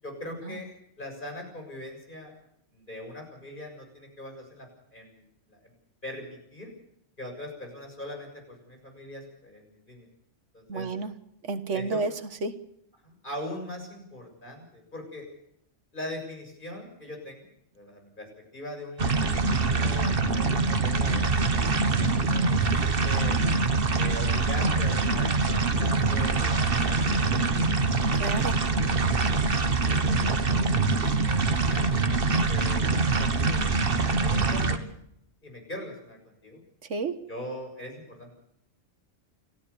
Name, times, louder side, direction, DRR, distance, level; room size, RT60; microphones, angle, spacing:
voice 1, 0.0-0.7 1.0-2.3 2.7-5.2 5.5-5.7 6.0-6.7 7.2-10.1 10.5-10.9 11.7-12.0 13.0-15.3 15.9-17.5 17.7-18.3 18.5-22.0 22.3-23.4 23.9-28.6 29.1-29.4 29.9-32.1 32.5-33.6 34.2-34.8 35.4-36.6 37.3-38.3, left 1 dB, 45° left, 3 dB, 7.0 m, -41 dB
voice 2, 10.7-11.1 11.4-12.1 12.4-12.5 28.1-28.6 30.3-30.4 36.9-37.1, right 3 dB, 80° right, 11 dB, 1.7 m, -30 dB
sound 1, 19.0-34.8, right 3 dB, 50° right, 1.6 m, -24 dB
29.5 x 13.0 x 7.0 m, 0.77 s
omnidirectional pair, 1.2 m